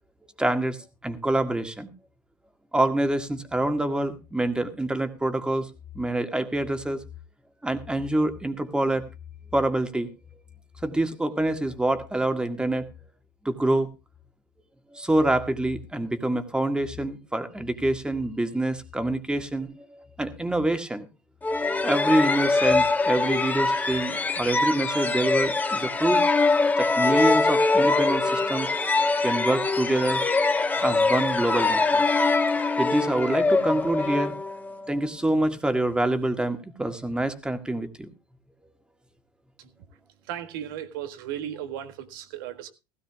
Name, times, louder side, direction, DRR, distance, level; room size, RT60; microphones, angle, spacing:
voice 1, 0.4-0.8 1.0-1.9 2.7-5.7 6.0-7.0 7.6-9.1 9.5-10.1 10.8-12.9 13.5-13.9 14.9-21.1 21.8-26.2 26.8-28.7 29.2-30.2 30.8-32.0 32.8-34.3 34.9-38.1, right 1 dB, 5° right, 1.9 m, -26 dB
sound 1, 21.4-34.9, left 3 dB, 15° left, 1.3 m, -23 dB
voice 2, 40.3-42.7, right 10 dB, 70° right, 1.7 m, -35 dB
16.5 x 15.5 x 2.4 m
hypercardioid pair, 90°, 12 cm